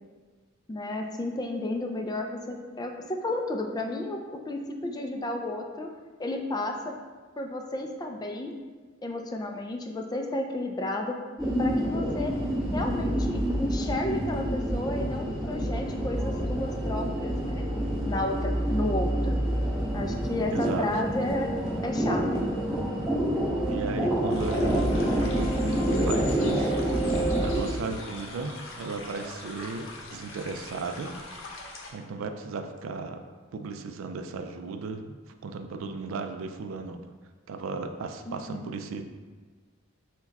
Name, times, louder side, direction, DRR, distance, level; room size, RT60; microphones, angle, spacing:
voice 1, 0.7-5.9 6.2-7.0 7.4-8.5 9.0-11.2 11.6-12.4 12.7-17.6 18.1-19.4 19.9-21.5 21.8-22.4 38.3-38.7, left 1 dB, 20° left, 3 dB, 0.3 m, -32 dB
sound 1, 11.4-27.6, right 1 dB, 5° right, 1.0 m, -27 dB
voice 2, 20.5-20.9 23.6-25.8 26.0-26.9 27.4-31.1 31.9-33.2 33.5-35.1 35.4-37.0 37.5-39.0, right 4 dB, 85° right, 7 dB, 0.3 m, -35 dB
sound 2, 24.3-31.9, left 3 dB, 80° left, 0.7 m, -42 dB
4.6 x 2.2 x 4.0 m, 1.4 s
head